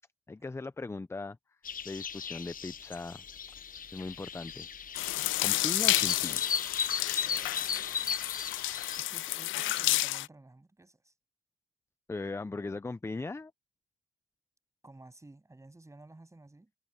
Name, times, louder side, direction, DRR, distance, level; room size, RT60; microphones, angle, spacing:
voice 1, 0.3-1.6 1.8-3.2 3.9-5.0 5.4-6.5 12.1-13.5, left 3 dB, 15° left, 0.6 m, -39 dB
sound 1, 1.6-9.0, left 7 dB, 45° left, 1.2 m, -37 dB
sound 2, 4.9-10.3, left 16 dB, 80° left, 0.5 m, -31 dB
voice 2, 7.3-8.3 9.0-11.1 12.6-12.8 14.8-16.7, right 2 dB, 15° right, 7.9 m, -54 dB
cardioid pair, 90°, 20 cm